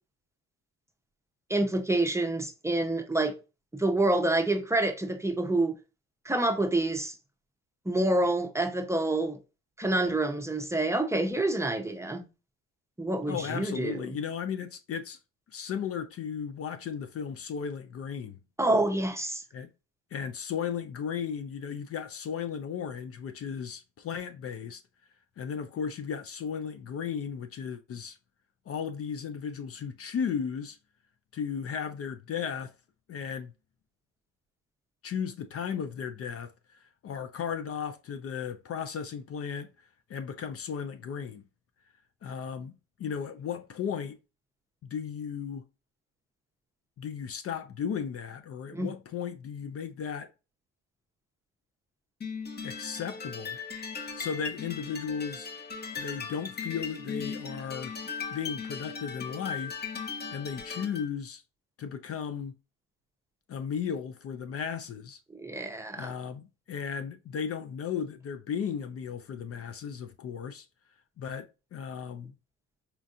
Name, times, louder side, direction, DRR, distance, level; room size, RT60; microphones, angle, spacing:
voice 1, 1.5-3.4 3.7-5.8 6.2-7.1 7.9-9.4 9.8-12.3 13.0-14.0 18.6-19.4 48.7-48.9 65.3-66.1, right 2 dB, 10° right, 0.6 m, -27 dB
voice 2, 13.3-15.2 15.5-18.4 19.5-19.7 20.1-24.8 25.4-28.2 28.7-30.8 31.3-32.7 33.1-33.5 35.0-39.7 40.1-41.4 42.2-42.7 43.0-44.2 44.8-45.6 47.0-50.3 52.6-53.6 54.2-55.5 56.0-57.9 58.3-59.7 60.3-61.4 61.8-62.5 63.5-65.2 65.9-70.7 71.2-72.3, left 7 dB, 50° left, 0.4 m, -35 dB
sound 1, 52.2-61.1, left 5 dB, 30° left, 0.9 m, -38 dB
4.4 x 2.5 x 2.4 m
cardioid pair, 90°, 30 cm